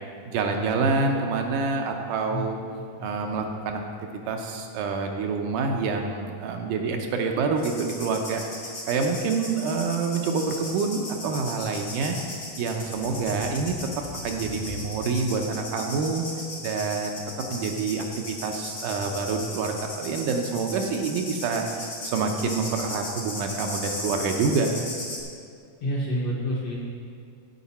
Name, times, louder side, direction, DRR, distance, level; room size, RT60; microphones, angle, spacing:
voice 1, 0.3-2.6 3.0-3.8 4.3-8.4 8.9-12.2 12.6-13.7 14.2-16.2 16.6-17.2 17.5-21.7 22.0-24.7, right 4 dB, 80° right, 3 dB, 2.2 m, -27 dB
sound 1, 7.6-25.2, left 2 dB, 40° left, 1.0 m, -37 dB
voice 2, 25.8-26.8, equal, 60° left, -5 dB, 1.7 m, -28 dB
14.5 x 5.1 x 4.2 m, 2.3 s
omnidirectional pair, 3.9 m